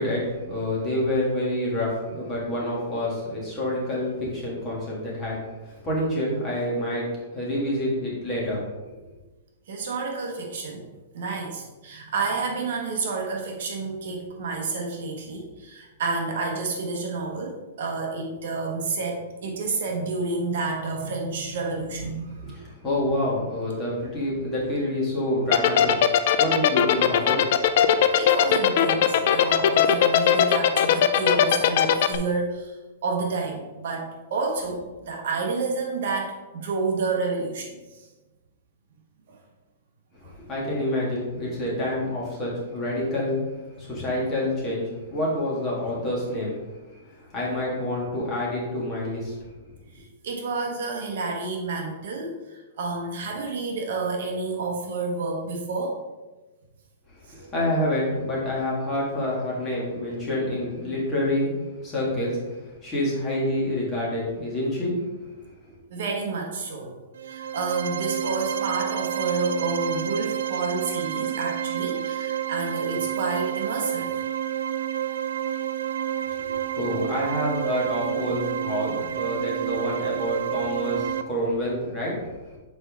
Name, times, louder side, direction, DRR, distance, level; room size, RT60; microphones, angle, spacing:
voice 1, 0.0-8.6 22.4-27.4 40.5-43.5 43.8-46.6 46.9-49.4 57.3-61.5 61.8-64.9 76.2-82.6, left 1 dB, 15° left, -6 dB, 1.5 m, -28 dB
voice 2, 9.7-10.9 11.1-22.6 28.2-32.7 33.0-38.1 39.3-39.4 40.2-40.3 50.2-56.0 57.4-57.5 65.9-66.9 67.2-74.1, right 3 dB, 50° right, 1 dB, 1.0 m, -29 dB
sound 1, 25.5-32.2, left 10 dB, 40° left, 0.4 m, -18 dB
sound 2, 67.1-81.2, right 10 dB, 80° right, 0.3 m, -29 dB
6.7 x 4.4 x 3.5 m, 1.2 s
hypercardioid pair, 180°, 0 cm